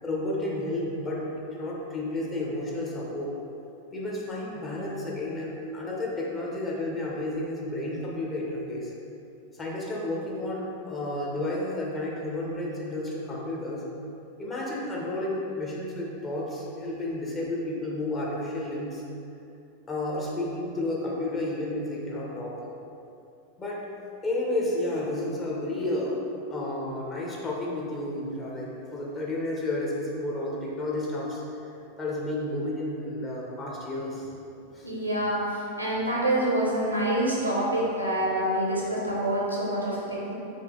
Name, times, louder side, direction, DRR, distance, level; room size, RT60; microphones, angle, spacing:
voice 1, 0.0-3.3 3.9-8.9 9.6-13.8 14.4-19.0 19.9-22.6 23.6-23.8 24.2-26.2 26.5-31.4 32.0-34.3 34.7-34.9, left 1 dB, 20° left, -4 dB, 0.8 m, -31 dB
voice 2, 34.8-40.3, right 1 dB, 90° right, -5 dB, 0.8 m, -26 dB
4.0 x 2.8 x 3.7 m, 2.7 s
figure-of-eight pair, 90°, 0 cm